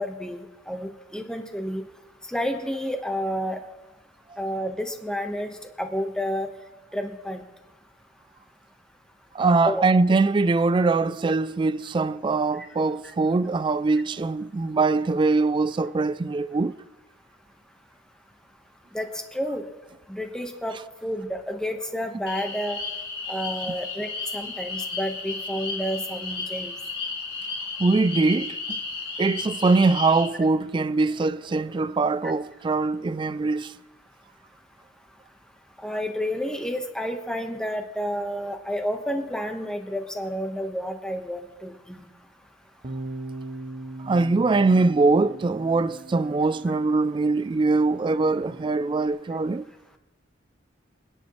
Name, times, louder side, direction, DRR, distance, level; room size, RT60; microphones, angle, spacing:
voice 1, 0.0-1.8 2.3-3.6 4.4-5.5 5.8-6.5 6.9-7.4 9.6-9.8 18.9-19.1 19.3-19.6 20.1-20.7 21.0-22.8 23.3-26.7 35.8-42.0, equal, 5° left, 1.2 m, -30 dB
voice 2, 9.3-16.8 27.8-28.8 29.2-33.7 44.0-49.7, right 3 dB, 25° right, 0.3 m, -22 dB
sound 1, 22.3-30.3, left 4 dB, 25° left, 1.9 m, -33 dB
Bass guitar, 42.8-49.1, right 2 dB, 40° right, 0.7 m, -40 dB
25.5 x 10.0 x 3.2 m
head